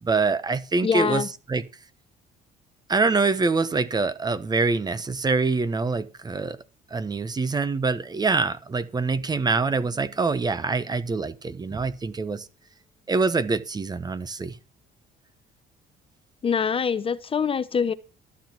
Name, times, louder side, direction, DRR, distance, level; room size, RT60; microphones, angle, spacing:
voice 1, 0.0-1.2 1.5-1.6 2.9-6.6 6.9-12.5 13.1-14.6, right 4 dB, 25° right, 1.1 m, -25 dB
voice 2, 0.8-1.3 16.4-17.9, left 6 dB, 35° left, 0.8 m, -24 dB
12.5 x 9.2 x 6.0 m
cardioid pair, 110°, 17 cm